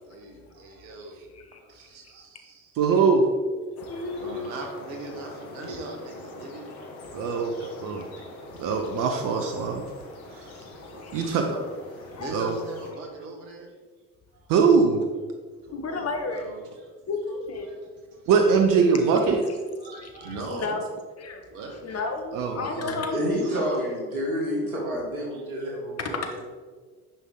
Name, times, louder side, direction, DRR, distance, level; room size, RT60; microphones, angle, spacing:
voice 1, 0.0-1.3 1.5-2.8 3.9-6.9 7.3-7.9 10.4-11.6 11.9-13.7 14.3-14.5 15.6-16.9 17.6-18.3 18.9-19.5 19.8-20.9 21.5-21.8 22.4-23.6 25.3-25.5, right 3 dB, 70° right, 1.7 m, -41 dB
voice 2, 2.8-3.3 7.1-8.1 8.6-9.8 10.4-10.5 11.1-11.5 12.3-12.5 14.5-15.0 18.3-19.4 22.3-23.0, right 5 dB, 50° right, 1.0 m, -22 dB
sound 1, 3.8-12.9, left 2 dB, 75° left, 1.4 m, -43 dB
voice 3, 3.9-4.6 8.7-8.8 10.8-11.3 12.1-12.3 15.7-16.5 17.1-17.7 20.5-20.8 21.2-21.4 21.8-23.2 26.0-26.1, left 3 dB, 35° left, 1.3 m, -32 dB
voice 4, 23.1-26.2, equal, 85° right, 1.9 m, -28 dB
10.0 x 5.4 x 3.8 m
figure-of-eight pair, 55°, 42 cm